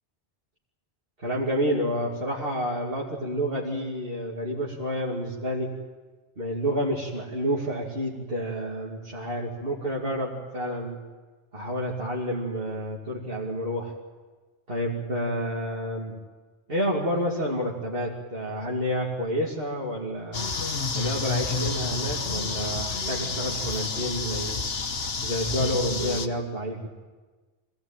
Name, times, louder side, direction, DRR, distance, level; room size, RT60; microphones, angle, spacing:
voice 1, 1.2-5.7 6.4-11.0 11.5-13.9 14.7-16.2 16.7-20.5 20.9-24.6 25.2-26.9, equal, 55° right, -4 dB, 2.7 m, -29 dB
sound 1, 20.3-26.3, left 4 dB, 65° left, 1.5 m, -30 dB
25.0 x 17.5 x 8.9 m, 1.3 s
omnidirectional pair, 1.1 m